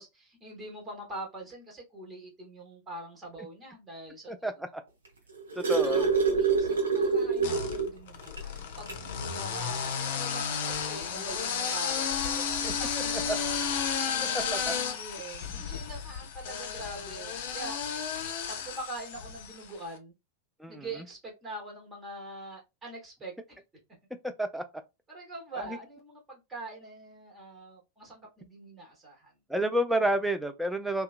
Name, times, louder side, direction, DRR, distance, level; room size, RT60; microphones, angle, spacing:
voice 1, 0.0-4.3 5.7-6.1 6.3-13.6 14.0-17.8 18.5-20.1 20.7-23.6 25.1-29.3, right 2 dB, 20° right, 1.1 m, -43 dB
voice 2, 4.3-4.8 5.6-6.1 12.6-12.7 20.6-20.9 24.4-24.6 25.7-25.8 29.5-31.0, right 1 dB, ahead, 0.4 m, -29 dB
sound 1, 5.0-8.0 8.4-8.5 8.9-9.1 10.2-10.3, right 5 dB, 70° right, 0.7 m, -26 dB
sound 2, 6.0-6.7 7.4-19.7, left 7 dB, 55° left, 0.5 m, -33 dB
2.7 x 2.2 x 2.5 m
figure-of-eight pair, 90°, 0 cm